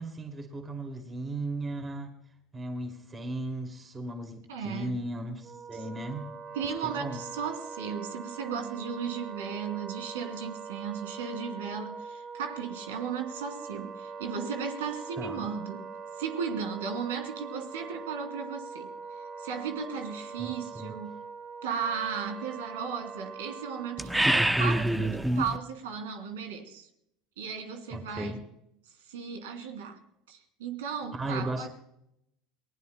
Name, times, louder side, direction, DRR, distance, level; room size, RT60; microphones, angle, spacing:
voice 1, 0.0-2.1 2.5-6.3 6.8-7.2 15.2-15.5 20.4-20.9 27.9-28.4 31.1-31.7, right 2 dB, 25° right, 2.6 m, -36 dB
voice 2, 4.5-5.0 5.7-5.8 6.5-15.9 16.2-21.2 21.6-26.9 27.4-28.4 29.0-30.0 30.3-31.7, right 6 dB, 80° right, 2.7 m, -35 dB
Wind instrument woodwind instrument, 5.4-24.5, right 5 dB, 40° right, 1.4 m, -43 dB
sound 1, 24.0-25.6, right 1 dB, 5° right, 1.0 m, -25 dB
29.5 x 20.0 x 2.2 m
hypercardioid pair, 80°, 0 cm